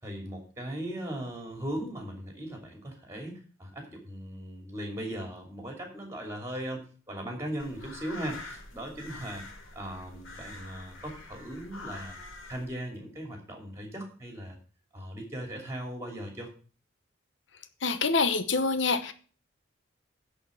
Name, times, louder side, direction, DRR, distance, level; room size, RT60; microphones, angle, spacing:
voice 1, 0.0-9.4 9.7-12.2 12.5-14.6 14.9-16.5, right 1 dB, 15° right, 2 dB, 2.7 m, -38 dB
sound 1, 7.6-12.7, left 2 dB, 85° left, 2.5 m, -45 dB
voice 2, 17.8-19.1, left 4 dB, 65° left, 11 dB, 0.9 m, -26 dB
10.5 x 4.5 x 7.2 m, 0.39 s
head